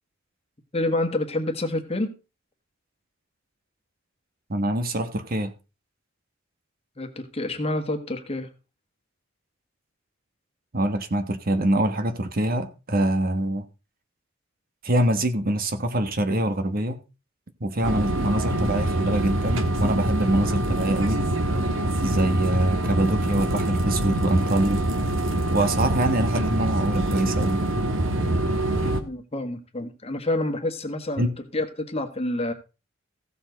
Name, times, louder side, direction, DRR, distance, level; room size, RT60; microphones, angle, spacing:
voice 1, 0.7-2.1 7.0-8.5 29.0-32.5, left 1 dB, 30° left, 1.4 m, -28 dB
voice 2, 4.5-5.5 10.7-13.7 14.8-17.0 17.6-21.2 22.0-24.9 25.5-27.7 31.2-31.3, right 1 dB, 45° right, 1.2 m, -24 dB
sound 1, 17.8-29.0, right 1 dB, 75° right, 1.4 m, -25 dB
15.5 x 7.0 x 4.0 m
head